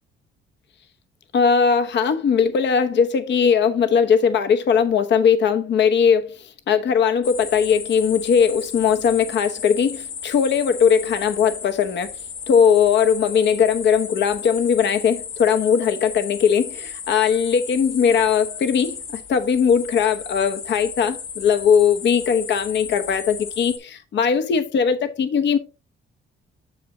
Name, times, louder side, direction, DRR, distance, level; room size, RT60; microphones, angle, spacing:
voice 1, 1.3-6.4 6.7-12.1 12.5-25.6, left 7 dB, 65° left, 1.0 m, -19 dB
sound 1, 7.2-23.8, left 6 dB, 80° left, 1.7 m, -35 dB
8.4 x 7.0 x 2.7 m
cardioid pair, 90°, 20 cm